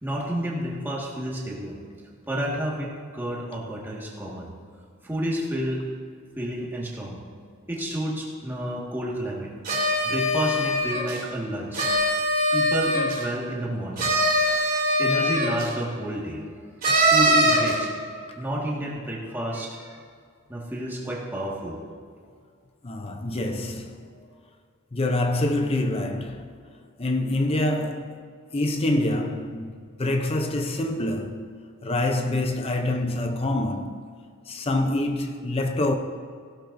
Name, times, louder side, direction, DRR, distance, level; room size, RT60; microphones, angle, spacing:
voice 1, 0.0-1.8 2.3-4.5 5.0-5.8 6.4-7.2 7.7-9.5 10.0-11.8 12.5-14.1 15.0-16.4 17.0-17.9 18.3-20.0 20.5-21.8, right 1 dB, 10° right, 1.7 m, -30 dB
sound 1, 9.6-11.2 11.7-13.2 14.0-15.7 16.8-17.8, equal, 40° right, 3.1 m, -22 dB
voice 2, 22.8-24.1 24.9-26.6 27.0-28.2 28.5-29.7 30.0-31.5 31.8-34.1 34.5-36.0, left 1 dB, 25° left, 0.6 m, -26 dB
16.5 x 12.0 x 2.6 m
head